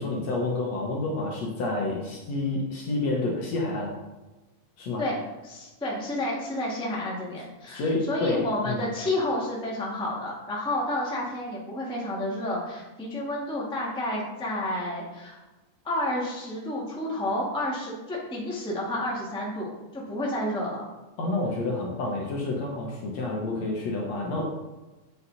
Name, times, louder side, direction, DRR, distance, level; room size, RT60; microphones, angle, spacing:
voice 1, 0.0-3.9 4.8-5.0 7.7-8.8 21.2-24.4, left 2 dB, 60° left, -2 dB, 2.2 m, -29 dB
voice 2, 5.0-15.4 15.8-20.8, left 1 dB, ahead, -4 dB, 1.3 m, -30 dB
8.5 x 6.4 x 4.2 m, 1.1 s
omnidirectional pair, 3.9 m